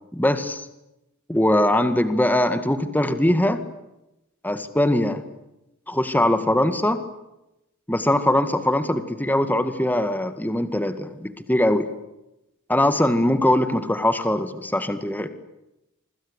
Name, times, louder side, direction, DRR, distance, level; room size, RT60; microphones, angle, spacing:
voice 1, 0.1-0.7 1.3-3.6 4.4-5.2 5.9-7.0 7.9-11.9 12.7-15.3, left 1 dB, 10° left, 10 dB, 2.0 m, -21 dB
27.0 x 25.5 x 8.4 m, 0.90 s
head